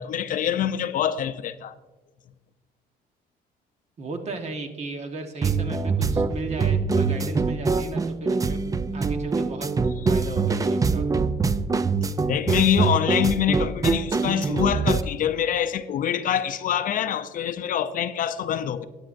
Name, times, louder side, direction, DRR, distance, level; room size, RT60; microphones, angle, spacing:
voice 1, 0.0-1.7 12.3-18.9, left 9 dB, 55° left, 0.5 m, -25 dB
voice 2, 4.0-8.6 8.9-9.7 10.1-11.1, right 3 dB, 40° right, 1.3 m, -36 dB
sound 1, 5.4-15.0, right 4 dB, 20° right, 0.4 m, -24 dB
13.0 x 10.0 x 2.6 m
cardioid pair, 110°, 17 cm